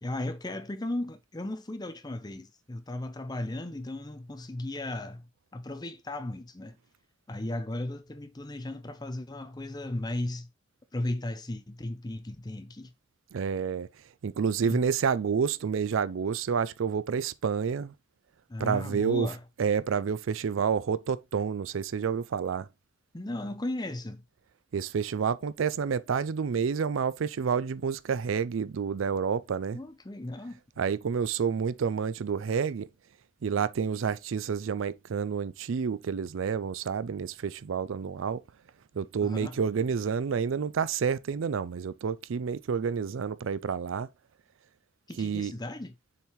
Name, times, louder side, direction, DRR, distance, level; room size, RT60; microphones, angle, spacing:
voice 1, 0.0-6.8 7.3-10.5 10.9-12.9 14.7-14.8 18.5-19.4 23.1-24.2 29.7-30.6 39.2-39.6 45.1-45.9, left 1 dB, 20° left, 0.7 m, -36 dB
voice 2, 13.3-13.9 14.2-17.9 18.6-19.3 19.6-22.7 24.7-29.8 30.8-32.9 33.4-38.4 38.9-44.1 45.2-45.5, right 6 dB, 70° right, 0.4 m, -29 dB
6.7 x 4.5 x 3.0 m
head